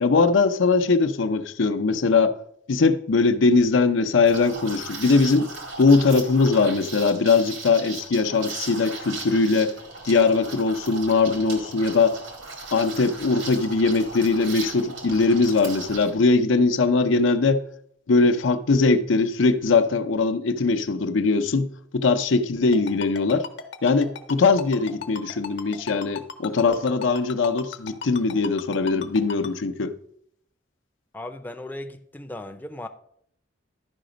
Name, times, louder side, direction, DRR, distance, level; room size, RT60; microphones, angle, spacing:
voice 1, 0.0-2.3 2.7-5.5 5.8-9.7 10.0-12.2 12.7-17.6 18.1-21.7 21.9-23.5 23.8-29.9, left 4 dB, 85° left, 0.6 m, -21 dB
Liquid, 4.2-16.1, right 3 dB, 90° right, 2.0 m, -37 dB
Ringtone, 22.7-29.5, left 6 dB, 65° left, 0.9 m, -35 dB
voice 2, 31.1-32.9, left 1 dB, 10° left, 0.4 m, -36 dB
11.5 x 5.0 x 5.0 m
head